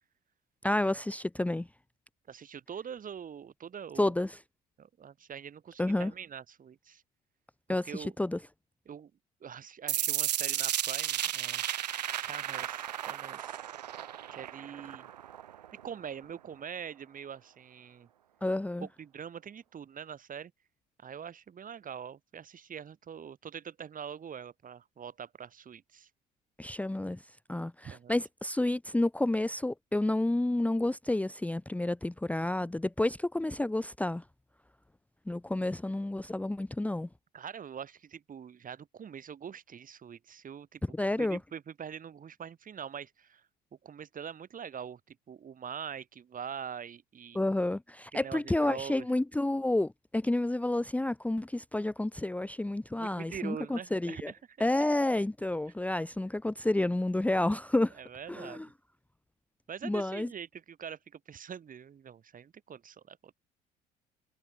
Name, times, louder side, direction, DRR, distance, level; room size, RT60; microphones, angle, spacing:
voice 1, 0.6-1.7 4.0-4.4 5.8-6.1 7.7-8.4 18.4-18.9 26.6-27.2 27.5-34.2 35.3-37.1 40.9-41.4 47.3-54.3 54.6-58.0 58.3-58.7 59.8-60.3, left 1 dB, 5° left, 0.9 m, -30 dB
voice 2, 2.3-4.1 4.8-7.0 7.7-8.1 8.9-9.1 9.4-11.6 12.1-13.6 14.3-15.1 15.8-18.1 18.8-20.5 21.0-26.1 27.8-28.2 37.3-40.8 41.2-43.4 43.8-47.4 48.1-49.1 52.9-54.7 57.9-58.6 59.7-63.3, right 8 dB, 40° right, 4.4 m, -44 dB
sound 1, 9.9-15.9, right 11 dB, 85° right, 2.7 m, -34 dB
hypercardioid pair, 60°, 21 cm